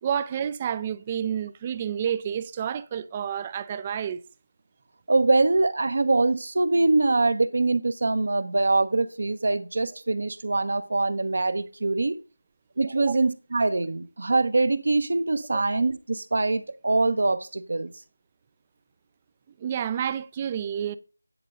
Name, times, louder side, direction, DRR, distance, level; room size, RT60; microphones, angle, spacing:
voice 1, 0.0-4.2 13.0-13.2 15.5-15.6 19.6-21.0, right 8 dB, 20° right, 0.4 m, -29 dB
voice 2, 5.1-12.2 12.8-17.9, right 3 dB, 55° right, 0.8 m, -23 dB
9.9 x 3.8 x 5.4 m
figure-of-eight pair, 170°, 0 cm